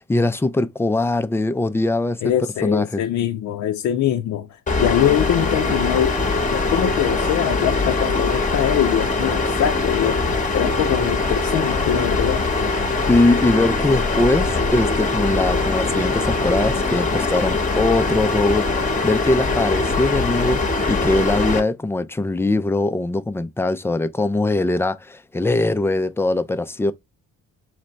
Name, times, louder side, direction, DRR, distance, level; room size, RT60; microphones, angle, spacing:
voice 1, 0.0-2.2 2.6-3.0 13.1-26.9, left 2 dB, 10° left, 0.4 m, -21 dB
voice 2, 2.2-6.2 6.5-10.2 10.5-12.4, left 10 dB, 65° left, 0.5 m, -23 dB
sound 1, 4.7-21.6, left 3 dB, 25° left, 0.9 m, -22 dB
3.2 x 3.2 x 3.9 m
cardioid pair, 90°, 30 cm